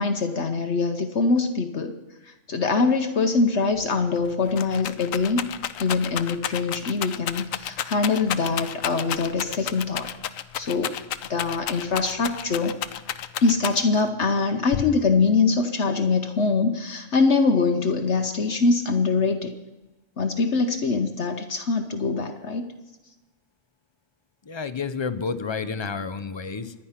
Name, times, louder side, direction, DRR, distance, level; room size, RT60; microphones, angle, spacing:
voice 1, 0.0-1.9 2.3-5.4 5.8-10.1 10.6-11.0 11.3-12.7 13.4-19.5 20.2-22.7, left 4 dB, 60° left, 6 dB, 1.2 m, -23 dB
Rattle, 3.8-3.9 4.2-14.1 14.7-15.3, left 10 dB, 80° left, 1.1 m, -32 dB
voice 2, 24.5-26.7, left 5 dB, 30° left, 12 dB, 0.5 m, -30 dB
24.5 x 10.0 x 5.8 m, 1.1 s
omnidirectional pair, 1.4 m